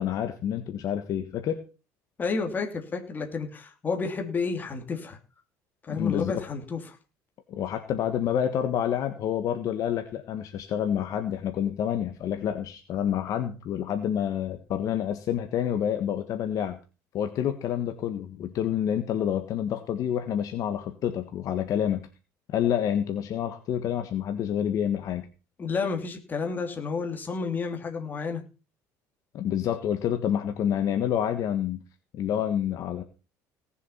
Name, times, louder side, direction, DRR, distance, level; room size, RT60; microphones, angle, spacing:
voice 1, 0.0-1.6 5.9-6.4 7.5-16.8 17.1-22.1 22.5-25.2 29.3-31.8 32.1-33.0, left 9 dB, 50° left, 7 dB, 1.5 m, -28 dB
voice 2, 2.2-5.2 5.8-7.0 25.6-28.4, left 4 dB, 25° left, 3 dB, 2.9 m, -31 dB
18.0 x 7.2 x 5.7 m, 0.33 s
cardioid pair, 145°, 8 cm